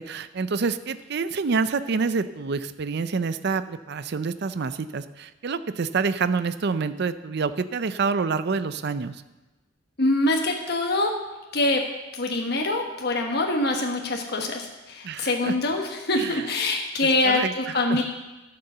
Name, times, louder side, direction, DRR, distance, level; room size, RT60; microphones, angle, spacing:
voice 1, 0.0-9.2 15.0-15.5 16.2-16.4 17.2-18.0, right 4 dB, 60° right, 12 dB, 0.5 m, -27 dB
voice 2, 10.0-11.1 11.5-11.8 12.2-18.0, left 2 dB, 55° left, 1 dB, 1.2 m, -24 dB
11.5 x 6.9 x 6.7 m, 1.1 s
head